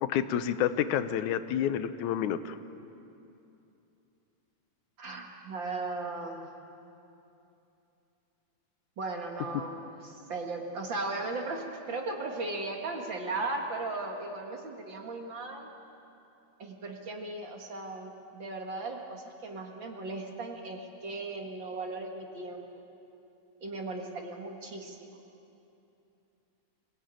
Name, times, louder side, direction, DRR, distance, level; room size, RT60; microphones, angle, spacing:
voice 1, 0.0-2.6, left 10 dB, 85° left, 12 dB, 2.2 m, -29 dB
voice 2, 5.0-6.5 9.0-15.7 16.6-22.6 23.6-25.2, right 2 dB, 45° right, 2 dB, 2.1 m, -37 dB
25.0 x 17.5 x 9.0 m, 2.8 s
omnidirectional pair, 3.4 m